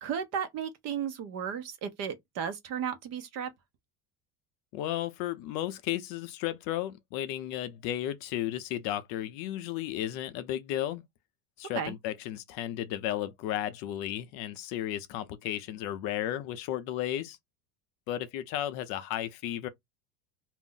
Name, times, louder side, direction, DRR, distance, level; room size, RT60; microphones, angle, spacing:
voice 1, 0.0-3.5 11.7-11.9, right 8 dB, 40° right, 0.5 m, -34 dB
voice 2, 4.7-11.0 11.6-17.4 18.1-19.7, left 12 dB, 55° left, 0.5 m, -34 dB
2.5 x 2.0 x 3.7 m
cardioid pair, 150°, 41 cm